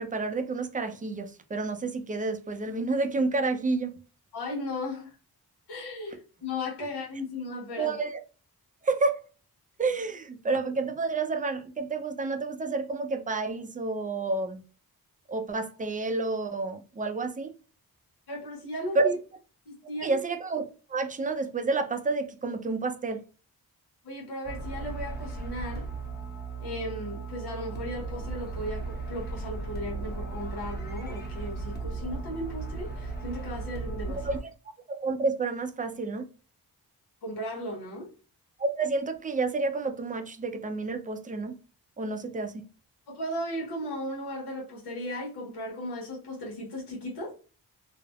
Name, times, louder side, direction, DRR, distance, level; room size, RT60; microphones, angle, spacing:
voice 1, 0.0-4.0 7.8-8.2 8.8-9.2 9.8-14.6 15.3-17.5 18.9-19.1 20.0-23.3 34.1-34.4 34.9-36.3 38.6-41.6 42.0-42.7, right 3 dB, 20° right, 0.4 m, -29 dB
voice 2, 4.3-5.1 5.7-8.0 18.3-19.2 19.7-20.2 24.0-25.9 26.6-34.3 37.2-38.1 43.1-47.3, left 1 dB, 85° left, 1.1 m, -36 dB
sound 1, 24.4-34.4, right 3 dB, 25° left, 0.8 m, -36 dB
3.3 x 2.1 x 2.3 m
cardioid pair, 80°, 39 cm